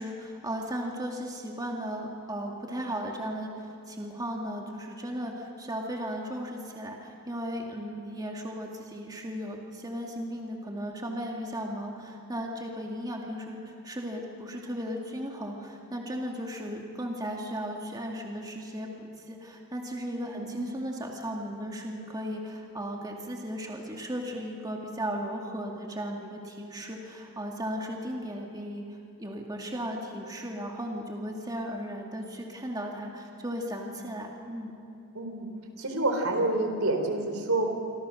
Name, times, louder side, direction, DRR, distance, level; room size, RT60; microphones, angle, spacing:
voice 1, 0.0-18.9 19.2-34.7, equal, 20° right, 0 dB, 2.4 m, -36 dB
voice 2, 20.2-20.6 35.1-35.5 35.8-37.7, right 2 dB, 75° right, 4 dB, 4.0 m, -28 dB
27.0 x 26.0 x 6.5 m, 2.6 s
head